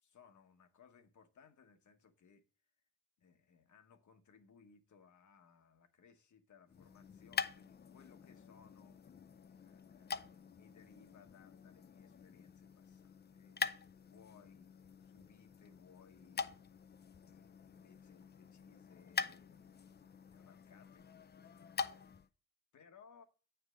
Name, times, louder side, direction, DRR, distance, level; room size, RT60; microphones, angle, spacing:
voice 1, 0.0-2.4 3.2-9.0 9.6-14.7 15.0-16.6 17.2-22.1 22.7-23.2, left 6 dB, 65° left, 1.1 m, -64 dB
sound 1, 6.7-22.3, left 6 dB, 30° left, 0.5 m, -45 dB
8.7 x 3.4 x 6.2 m
cardioid pair, 100°, 32 cm